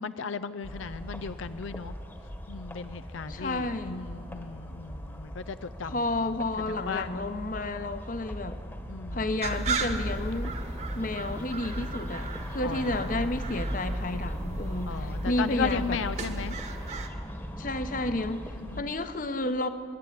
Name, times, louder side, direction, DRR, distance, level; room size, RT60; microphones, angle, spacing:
voice 1, 0.0-1.9 2.5-6.0 6.7-7.1 8.9-9.2 12.6-13.2 14.9-16.5 18.6-18.9, left 6 dB, 85° left, 12 dB, 0.5 m, -36 dB
sound 1, 0.6-18.8, equal, 10° left, 1.3 m, -40 dB
voice 2, 3.3-4.1 5.8-8.6 9.1-10.5 10.9-16.0 17.6-18.5 18.8-19.7, left 2 dB, 45° left, 10 dB, 1.0 m, -31 dB
sound 2, 9.4-17.1, right 2 dB, 35° right, 1.4 m, -34 dB
24.5 x 11.0 x 9.6 m, 2.2 s
head